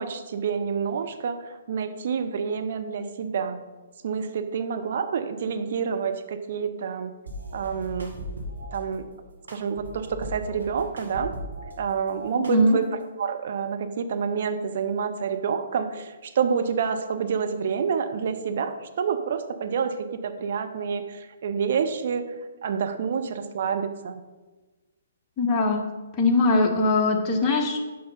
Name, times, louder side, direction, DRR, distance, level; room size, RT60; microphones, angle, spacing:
voice 1, 0.0-3.6 4.0-7.1 7.5-8.2 8.7-9.1 9.5-11.3 11.8-12.8 13.2-22.3 22.6-24.2, right 6 dB, 55° right, 8 dB, 0.6 m, -28 dB
sound 1, 7.3-8.8 9.5-11.8 12.1-13.0, equal, 80° right, 1.7 m, -38 dB
voice 2, 12.4-12.8 25.4-25.8 26.2-27.8, left 2 dB, 25° left, 2 dB, 1.1 m, -21 dB
5.7 x 5.3 x 5.3 m, 1.2 s
figure-of-eight pair, 125°, 0 cm